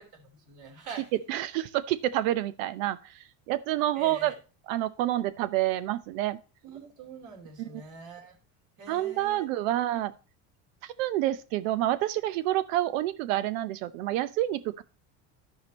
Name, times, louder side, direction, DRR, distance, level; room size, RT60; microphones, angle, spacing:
voice 1, 0.0-1.1 3.9-4.4 6.6-8.3 8.8-10.0, right 6 dB, 50° right, 3.0 m, -44 dB
voice 2, 1.3-4.3 4.7-6.4 7.6-7.8 8.9-10.1 10.8-14.8, right 14 dB, 85° right, 0.9 m, -28 dB
12.5 x 5.0 x 4.1 m
supercardioid pair, 120°, 39 cm